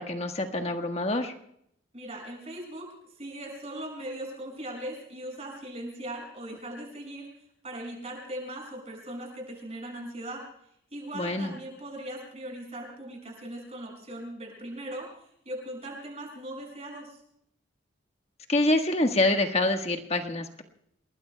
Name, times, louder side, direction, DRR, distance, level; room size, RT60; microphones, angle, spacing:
voice 1, 0.0-1.3 11.1-11.5 18.5-20.6, left 2 dB, 35° left, 4 dB, 1.5 m, -26 dB
voice 2, 1.9-2.9 3.2-7.3 7.6-10.4 10.9-17.2, right 1 dB, 35° right, 1 dB, 6.4 m, -39 dB
28.5 x 20.5 x 2.3 m, 0.73 s
head